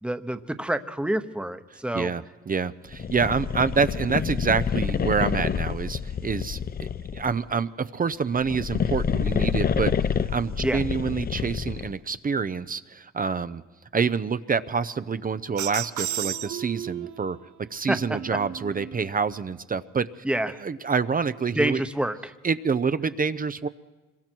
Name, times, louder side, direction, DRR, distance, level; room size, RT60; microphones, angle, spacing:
voice 1, 0.0-2.1 10.6-10.8 17.9-18.2 20.2-20.6 21.5-22.3, right 1 dB, 5° right, 9 dB, 1.0 m, -27 dB
voice 2, 1.9-13.6 13.9-17.4 17.7-20.1 20.6-21.8 22.4-23.7, right 5 dB, 30° right, 13 dB, 0.6 m, -27 dB
sound 1, 2.9-7.4 8.3-12.0, left 7 dB, 30° left, 0.6 m, -28 dB
sound 2, 15.6-17.3 17.9-19.1, right 11 dB, 75° right, 0.8 m, -33 dB
25.5 x 22.5 x 4.6 m, 1.2 s
cardioid pair, 90°, 30 cm